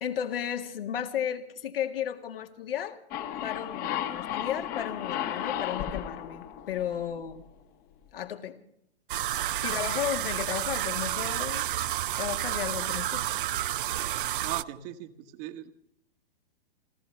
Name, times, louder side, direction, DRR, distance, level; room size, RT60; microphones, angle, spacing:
voice 1, 0.0-3.0 3.4-7.4 8.1-8.6 9.6-11.7 12.2-13.4, left 10 dB, 65° left, 5 dB, 1.9 m, -34 dB
sound 1, 3.1-7.6, left 10 dB, 30° left, 1.3 m, -34 dB
sound 2, 9.1-14.6, right 13 dB, 60° right, 0.5 m, -30 dB
voice 2, 14.4-15.7, right 14 dB, 40° right, 8 dB, 1.4 m, -38 dB
29.5 x 13.5 x 3.4 m, 0.73 s
hypercardioid pair, 120°, 30 cm